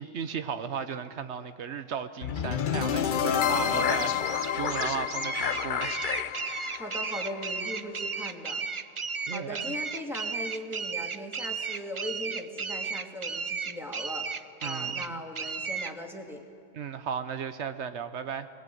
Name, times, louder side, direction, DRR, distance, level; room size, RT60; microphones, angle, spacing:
voice 1, 0.0-6.2 9.3-9.7 14.6-15.2 16.7-18.5, right 7 dB, 85° right, 10 dB, 1.2 m, -35 dB
sound 1, 2.2-8.3, left 8 dB, 55° left, 0.8 m, -29 dB
voice 2, 3.2-4.1 6.7-8.6 9.3-16.4, equal, ahead, 1 dB, 2.3 m, -39 dB
sound 2, 3.5-15.9, right 5 dB, 35° right, 0.5 m, -34 dB
22.0 x 19.5 x 9.2 m, 2.5 s
omnidirectional pair, 1.1 m